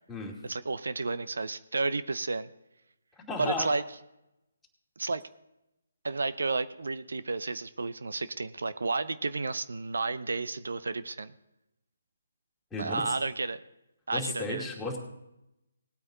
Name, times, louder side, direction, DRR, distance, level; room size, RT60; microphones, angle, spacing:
voice 1, 0.4-2.5 3.4-3.8 5.0-5.2 6.0-11.3 12.8-13.6 14.1-14.7, right 3 dB, 75° right, 13 dB, 0.6 m, -32 dB
voice 2, 3.3-3.7 12.7-13.2 14.1-15.0, left 2 dB, 5° left, -3 dB, 2.4 m, -34 dB
19.5 x 8.7 x 3.9 m, 0.89 s
figure-of-eight pair, 150°, 0 cm